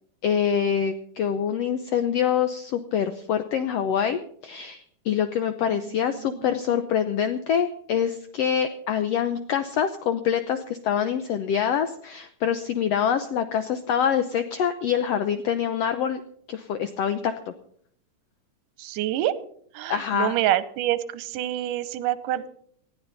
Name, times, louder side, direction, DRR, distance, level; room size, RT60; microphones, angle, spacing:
voice 1, 0.2-16.2 16.5-17.5 19.9-20.3, left 8 dB, 80° left, 10 dB, 1.4 m, -25 dB
voice 2, 5.6-6.5 18.8-19.3 19.7-22.5, right 13 dB, 85° right, 14 dB, 2.4 m, -27 dB
19.5 x 14.0 x 4.0 m, 0.64 s
omnidirectional pair, 3.8 m